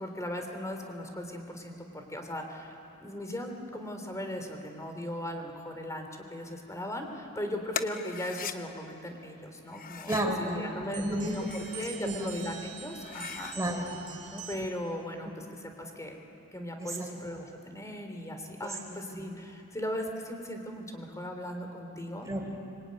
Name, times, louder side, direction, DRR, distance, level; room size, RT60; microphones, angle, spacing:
voice 1, 0.0-2.7 3.0-13.5 14.5-15.3 15.8-16.2 16.5-22.3, left 1 dB, 15° left, 4 dB, 3.3 m, -38 dB
sound 1, 7.7-8.6 9.7-10.3 11.2-12.0 12.4-12.5 12.9-13.6, left 7 dB, 40° left, 1.0 m, -39 dB
voice 2, 10.1-10.6 10.9-12.5 13.5-14.5 16.8-17.1 18.6-19.2 22.2-22.6, right 1 dB, 15° right, 1 dB, 4.5 m, -33 dB
sound 2, 10.9-14.9, right 8 dB, 35° right, 2.3 m, -45 dB
25.5 x 24.0 x 9.7 m, 2.8 s
head